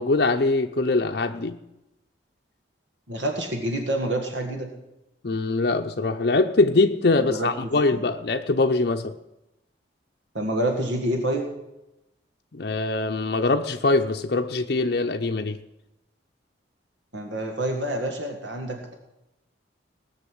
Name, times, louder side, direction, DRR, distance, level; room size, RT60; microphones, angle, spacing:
voice 1, 0.0-1.6 5.2-9.1 12.5-15.6, left 3 dB, 55° left, 4 dB, 0.6 m, -23 dB
voice 2, 3.1-4.7 7.2-7.5 7.9-8.0 10.3-11.5 17.1-18.9, right 1 dB, 75° right, 3 dB, 1.8 m, -27 dB
18.5 x 6.6 x 7.9 m, 0.91 s
head